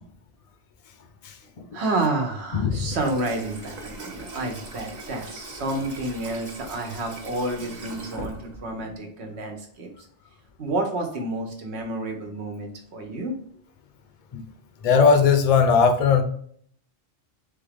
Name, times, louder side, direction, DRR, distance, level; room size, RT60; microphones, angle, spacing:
voice 1, 1.7-9.9 10.6-13.3, right 2 dB, 70° right, 3 dB, 1.2 m, -29 dB
voice 2, 2.5-2.9 14.3-14.4 14.8-16.2, left 5 dB, 40° left, 5 dB, 0.6 m, -18 dB
Water tap faucet / Sink (filling or washing), 2.7-8.9, right 2 dB, 40° right, 1.0 m, -40 dB
3.8 x 3.7 x 3.5 m, 0.62 s
omnidirectional pair, 1.2 m